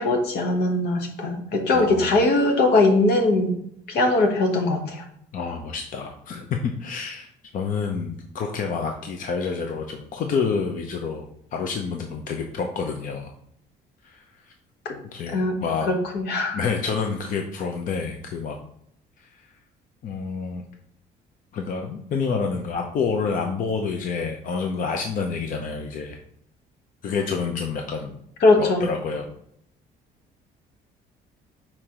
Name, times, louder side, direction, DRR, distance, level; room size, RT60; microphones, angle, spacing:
voice 1, 0.0-3.6 3.9-5.0 14.8-15.0 15.3-15.6 15.9-16.6 28.4-28.9, left 2 dB, 75° left, 4 dB, 1.2 m, -21 dB
voice 2, 1.7-2.2 5.3-7.3 7.5-13.3 14.0-14.5 15.1-15.9 16.5-18.6 19.2-19.5 20.0-20.6 21.5-26.2 27.0-28.2 28.6-29.3, left 5 dB, 55° left, 3 dB, 0.7 m, -28 dB
4.4 x 4.4 x 5.0 m, 0.71 s
cardioid pair, 110°, 17 cm